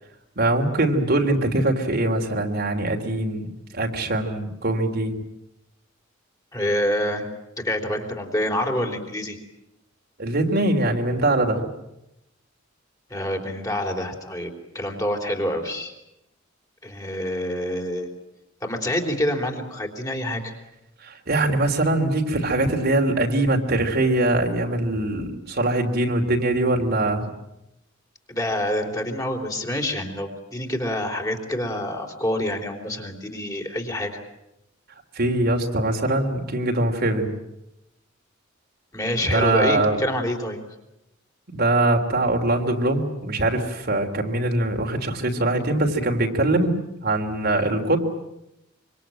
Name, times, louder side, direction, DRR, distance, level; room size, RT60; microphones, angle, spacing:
voice 1, 0.4-5.1 10.2-11.7 21.0-27.3 35.1-37.3 39.3-40.0 41.5-46.8 47.0-48.0, right 2 dB, 50° right, 3 dB, 3.0 m, -22 dB
voice 2, 6.5-7.3 7.6-9.4 13.1-15.9 16.8-18.1 18.6-20.5 28.3-34.2 38.9-40.6, left 1 dB, 15° left, 2 dB, 3.7 m, -27 dB
25.5 x 25.0 x 9.0 m, 0.87 s
head